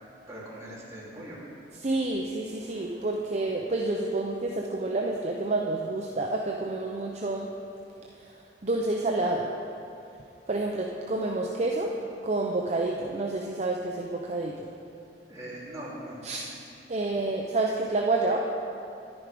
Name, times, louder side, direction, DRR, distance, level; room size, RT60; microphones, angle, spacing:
voice 1, 0.3-1.4 15.3-16.4, right 1 dB, 20° right, -8 dB, 2.9 m, -41 dB
voice 2, 1.8-7.5 8.1-8.4 8.6-9.5 10.5-11.9 12.2-14.7 16.2-16.4 16.9-18.4, right 2 dB, 40° right, 0 dB, 0.6 m, -29 dB
11.0 x 9.5 x 5.0 m, 2.7 s
head